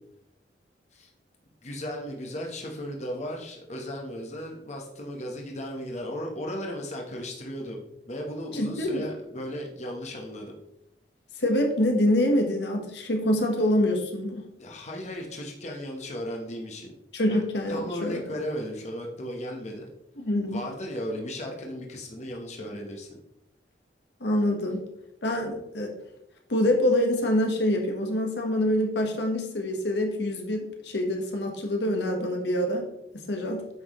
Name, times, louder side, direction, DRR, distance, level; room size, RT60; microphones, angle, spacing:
voice 1, 1.6-7.8 8.0-10.5 14.6-16.9 17.3-17.4 17.7-19.8 20.5-23.2, equal, 40° left, 0 dB, 1.2 m, -35 dB
voice 2, 8.5-9.1 11.4-14.4 17.1-18.2 20.2-20.6 24.2-24.8 25.2-25.9 26.5-32.9 33.3-33.6, left 1 dB, 75° left, 2 dB, 1.3 m, -25 dB
9.2 x 6.0 x 3.1 m, 0.82 s
head